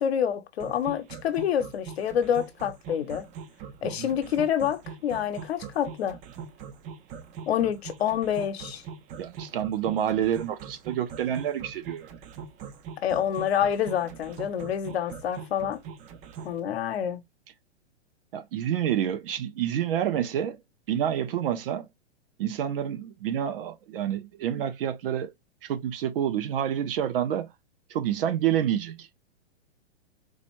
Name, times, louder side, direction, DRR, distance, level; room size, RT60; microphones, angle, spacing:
voice 1, 0.0-3.3 3.8-6.2 7.5-8.8 13.0-15.8 16.4-17.2, left 9 dB, 65° left, 1.0 m, -27 dB
sound 1, 0.6-16.6, right 7 dB, 20° right, 0.5 m, -41 dB
voice 2, 9.2-12.1 18.3-20.6 20.9-21.9 22.4-25.3 25.6-27.5 27.9-29.1, right 10 dB, 55° right, 0.8 m, -28 dB
4.0 x 2.5 x 3.1 m
hypercardioid pair, 120°, 34 cm